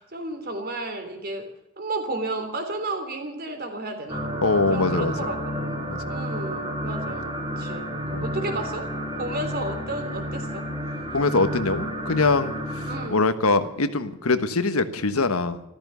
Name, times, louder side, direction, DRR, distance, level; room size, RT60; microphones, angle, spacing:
voice 1, 0.0-1.5 1.8-4.2 4.7-5.8 6.1-7.9 8.2-8.9 9.1-10.7 12.8-13.3, right 2 dB, 45° right, 6 dB, 3.3 m, -32 dB
sound 1, 4.1-13.1, equal, 20° right, 3.6 m, -31 dB
voice 2, 4.4-5.1 5.9-6.0 11.1-15.6, left 3 dB, 80° left, 10 dB, 1.3 m, -23 dB
14.0 x 14.0 x 6.9 m, 0.86 s
head